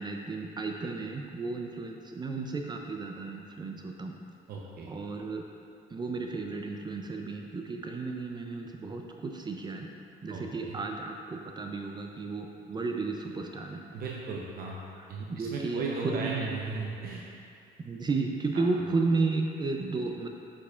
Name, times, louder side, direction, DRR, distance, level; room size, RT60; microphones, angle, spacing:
voice 1, 0.0-4.2 4.9-5.4 5.9-9.9 10.2-13.8 15.3-15.8 16.1-16.5 17.8-20.3, right 3 dB, 25° right, 2 dB, 0.4 m, -33 dB
voice 2, 4.5-4.9 10.3-10.8 13.9-14.8 15.1-17.2 18.5-18.7, right 4 dB, 60° right, -2 dB, 0.7 m, -36 dB
7.1 x 6.9 x 2.4 m, 2.5 s
cardioid pair, 110°, 17 cm